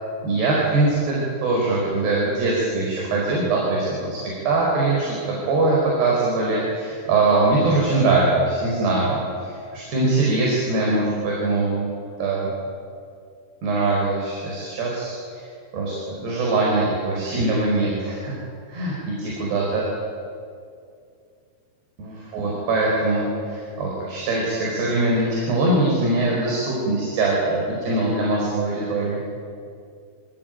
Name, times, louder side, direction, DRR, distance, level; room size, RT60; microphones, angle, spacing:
voice 1, 0.2-4.2 4.4-5.2 5.5-11.9 12.2-12.5 13.6-15.5 15.7-18.3 18.7-19.8 22.0-29.2, right 2 dB, 70° right, -4 dB, 6.9 m, -22 dB
26.5 x 19.0 x 9.2 m, 2.3 s
omnidirectional pair, 4.9 m